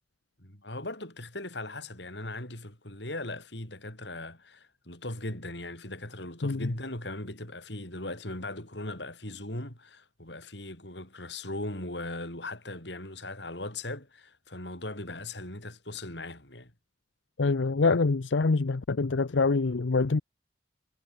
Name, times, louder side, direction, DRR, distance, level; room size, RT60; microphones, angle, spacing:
voice 1, 0.4-16.7, left 2 dB, 70° left, 6.5 m, -39 dB
voice 2, 6.4-6.7 17.4-20.2, left 3 dB, 85° left, 0.7 m, -25 dB
head